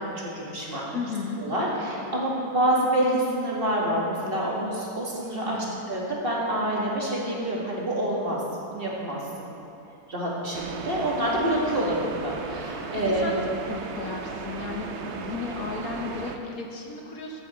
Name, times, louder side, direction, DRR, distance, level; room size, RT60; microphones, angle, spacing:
voice 1, 0.0-0.8 1.4-8.4 8.7-9.5 10.1-13.3, right 1 dB, 35° right, -5 dB, 2.1 m, -27 dB
voice 2, 0.9-1.4 5.4-5.8 13.1-17.4, left 4 dB, 70° left, 1 dB, 1.6 m, -34 dB
sound 1, 10.5-16.4, right 5 dB, 55° right, 0.9 m, -36 dB
15.5 x 8.6 x 4.4 m, 2.8 s
omnidirectional pair, 1.6 m